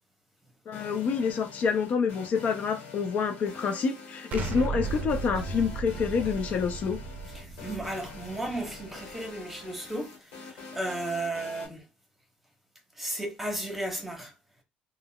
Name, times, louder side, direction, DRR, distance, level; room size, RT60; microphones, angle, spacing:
sound 1, 0.7-11.7, left 4 dB, 85° left, 1.1 m, -46 dB
voice 1, 0.7-7.0, left 6 dB, 50° left, 0.4 m, -28 dB
Explosion, 4.3-9.1, right 3 dB, 55° right, 0.5 m, -36 dB
voice 2, 7.3-11.8 13.0-14.3, right 1 dB, 5° right, 0.9 m, -34 dB
3.6 x 2.1 x 2.2 m
cardioid pair, 130°, 3 cm